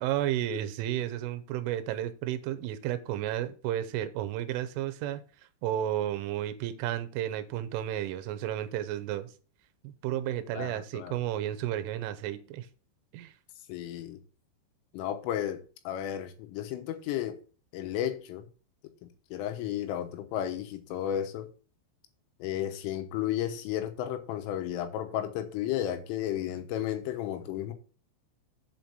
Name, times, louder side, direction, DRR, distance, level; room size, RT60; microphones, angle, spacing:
voice 1, 0.0-5.2 5.6-9.3 9.8-12.7 13.1-13.3, right 12 dB, 80° right, 3.2 m, -32 dB
voice 2, 10.5-11.1 13.7-14.2 14.9-17.4 17.7-18.4 19.0-21.5 22.4-27.7, left 11 dB, 80° left, 3.6 m, -33 dB
8.1 x 4.4 x 6.9 m
omnidirectional pair, 6.0 m